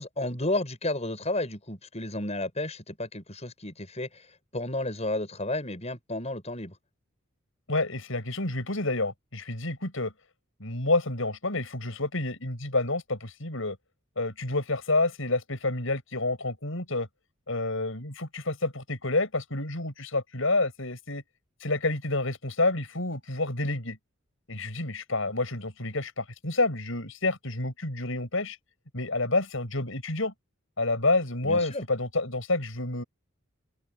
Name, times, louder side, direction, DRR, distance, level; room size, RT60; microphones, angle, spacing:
voice 1, 0.0-4.3 4.5-6.8 31.4-31.8, left 2 dB, 30° left, 7.5 m, -32 dB
voice 2, 7.7-10.1 10.6-13.8 14.2-17.1 17.5-21.2 21.6-24.0 24.5-28.6 28.9-30.3 30.8-33.0, left 2 dB, 70° left, 6.9 m, -29 dB
open air
head